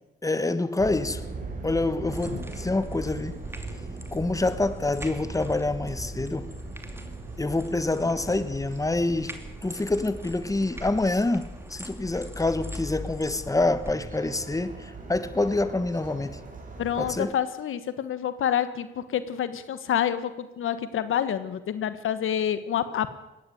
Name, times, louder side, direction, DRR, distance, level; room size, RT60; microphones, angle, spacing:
voice 1, 0.2-1.2 1.6-3.4 4.1-6.5 7.4-9.3 9.6-16.4 17.0-17.3, left 2 dB, 15° left, 1.4 m, -26 dB
sound 1, 0.8-17.2, right 3 dB, 40° right, 5.7 m, -40 dB
sound 2, 2.1-13.9, equal, 10° right, 2.7 m, -42 dB
voice 2, 16.8-23.2, left 9 dB, 80° left, 1.4 m, -28 dB
19.5 x 15.5 x 9.3 m
cardioid pair, 75°, 21 cm